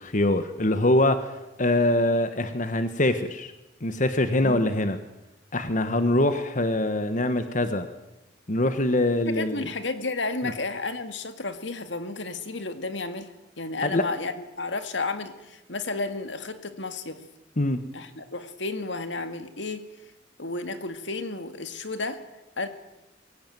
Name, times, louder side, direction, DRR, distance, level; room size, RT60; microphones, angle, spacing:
voice 1, 0.0-1.3 1.6-3.5 3.8-5.0 5.5-7.9 8.5-9.7 10.4-10.5 13.8-14.0 17.6-17.8, left 1 dB, 45° left, 9 dB, 1.3 m, -23 dB
voice 2, 9.3-17.2 17.9-19.9 20.4-22.2 22.6-22.7, left 3 dB, 75° left, 9 dB, 2.1 m, -32 dB
22.5 x 17.0 x 9.2 m, 0.95 s
head